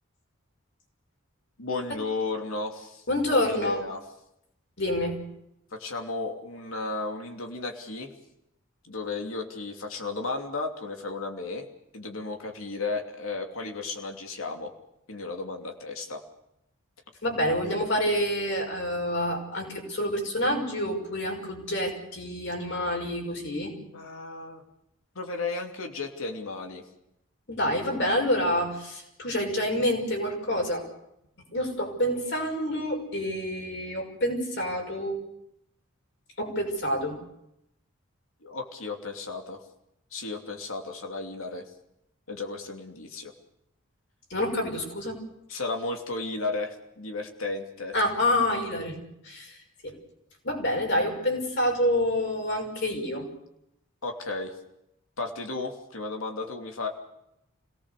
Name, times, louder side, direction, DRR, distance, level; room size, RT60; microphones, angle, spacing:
voice 1, 1.6-3.0 3.3-4.0 5.7-8.1 8.8-11.7 11.9-14.7 15.1-16.2 23.7-24.6 25.1-26.8 38.4-39.6 40.1-41.7 42.3-43.3 45.5-47.9 54.0-54.6 55.2-56.9, left 3 dB, 75° left, 3 dB, 2.8 m, -34 dB
voice 2, 3.1-3.8 4.8-5.2 17.2-23.7 27.5-30.9 31.5-35.2 36.4-37.2 44.3-45.2 47.9-49.6 49.8-49.9 50.4-53.3, left 1 dB, 55° left, 1 dB, 6.1 m, -27 dB
26.0 x 18.5 x 6.8 m, 0.82 s
head